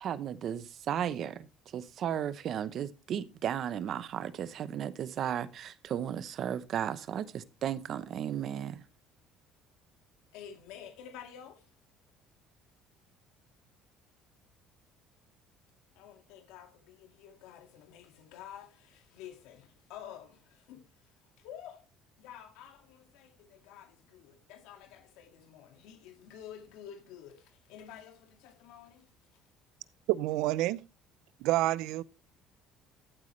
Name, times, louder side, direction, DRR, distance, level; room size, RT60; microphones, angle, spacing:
voice 1, 0.0-1.5 1.7-8.8, right 9 dB, 45° right, 0.8 m, -35 dB
voice 2, 10.3-11.7 15.9-21.9 22.2-29.4, left 9 dB, 85° left, 2.1 m, -50 dB
voice 3, 30.1-30.8 31.4-32.0, right 16 dB, 75° right, 0.5 m, -28 dB
13.5 x 8.2 x 3.2 m
cardioid pair, 160°, 0 cm